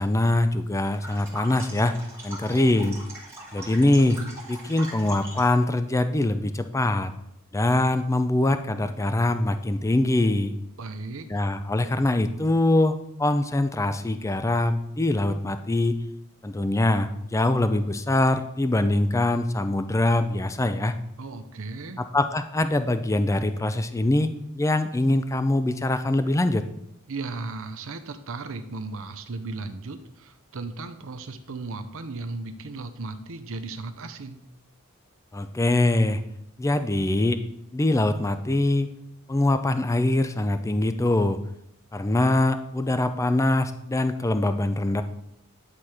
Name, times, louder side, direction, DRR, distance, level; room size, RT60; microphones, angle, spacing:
voice 1, 0.0-2.0 2.2-3.0 3.5-4.2 4.5-7.1 7.5-10.5 11.3-16.0 16.4-20.9 22.0-26.6 35.3-36.2 36.6-37.4 37.7-38.9 39.3-41.4 41.9-45.0, left 2 dB, 15° left, 10 dB, 0.4 m, -23 dB
sound 1, 0.9-5.6, right 1 dB, 10° right, 2.3 m, -41 dB
voice 2, 10.8-11.3 21.2-22.0 27.1-34.4, right 3 dB, 65° right, 9 dB, 0.7 m, -36 dB
9.8 x 4.4 x 4.8 m, 0.78 s
head